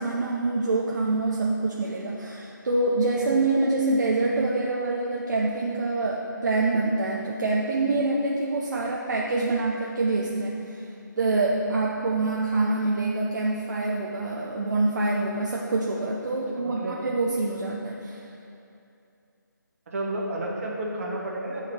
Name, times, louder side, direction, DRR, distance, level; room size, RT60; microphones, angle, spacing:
voice 1, 0.0-10.8 11.2-18.2, right 2 dB, 60° right, -3 dB, 0.7 m, -26 dB
voice 2, 16.5-17.0 19.9-21.7, right 1 dB, 45° right, -2 dB, 1.3 m, -31 dB
7.5 x 4.9 x 4.4 m, 2.6 s
figure-of-eight pair, 160°, 11 cm